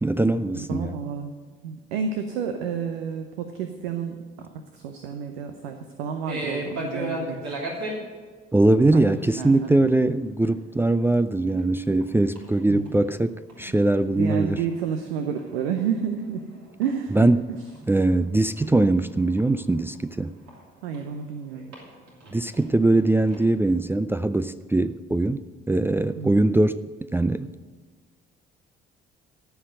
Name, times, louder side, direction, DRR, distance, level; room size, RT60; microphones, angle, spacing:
voice 1, 0.0-1.0 8.5-14.6 17.1-17.5 17.9-20.3 22.3-26.8 27.1-27.5, right 2 dB, 10° right, 0.3 m, -21 dB
voice 2, 0.5-1.3 1.6-7.5 8.9-9.0 9.4-9.7 12.7-12.9 14.1-16.5 16.8-17.3 20.8-21.7 26.2-26.5, right 7 dB, 75° right, 0.8 m, -30 dB
sound 1, 6.2-8.0 9.1-9.4 9.7-9.9 10.5-10.6 11.0-11.1 11.4-12.1 12.4-13.7 14.0-17.3 17.7-21.0 21.5-23.5, right 1 dB, 60° right, 2.8 m, -37 dB
14.0 x 5.7 x 7.8 m
figure-of-eight pair, 50°, 30 cm